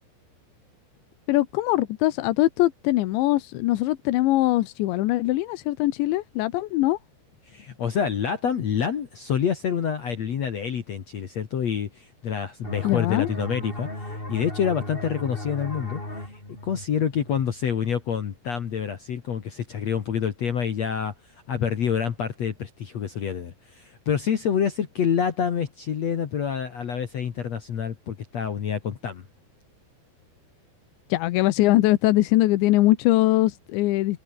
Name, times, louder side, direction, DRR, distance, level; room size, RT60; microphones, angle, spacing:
voice 1, 1.3-7.0 12.8-13.3 31.1-34.2, left 17 dB, 90° left, 3.4 m, -22 dB
voice 2, 7.5-13.9 14.3-16.0 16.3-21.1 21.5-29.3, left 7 dB, 50° left, 2.2 m, -27 dB
sound 1, 12.6-18.0, left 1 dB, 10° left, 6.4 m, -36 dB
omnidirectional pair, 5.1 m